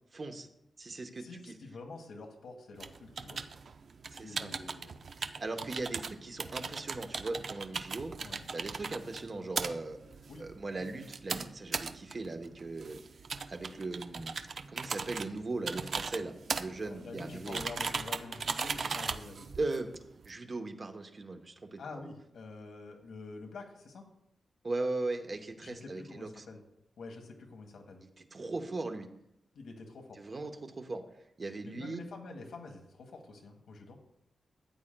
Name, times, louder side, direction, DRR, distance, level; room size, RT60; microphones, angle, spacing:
voice 1, 0.1-0.5 0.8-1.5 4.1-4.5 5.4-8.1 8.5-10.0 10.4-13.0 13.5-17.6 19.6-19.9 20.2-21.8 24.6-26.4 28.3-29.1 30.2-31.0 31.4-32.0, right 2 dB, 40° right, 5 dB, 0.9 m, -38 dB
voice 2, 1.2-3.5 4.1-5.0 8.2-8.5 10.3-10.5 16.8-19.5 21.8-24.0 25.6-26.6 27.0-28.0 29.5-30.2 31.6-34.0, left 3 dB, 90° left, 2 dB, 1.4 m, -47 dB
sound 1, 2.8-20.3, right 5 dB, 60° right, 0.4 m, -39 dB
12.5 x 8.8 x 2.2 m, 0.81 s
wide cardioid pair, 105°, 0 cm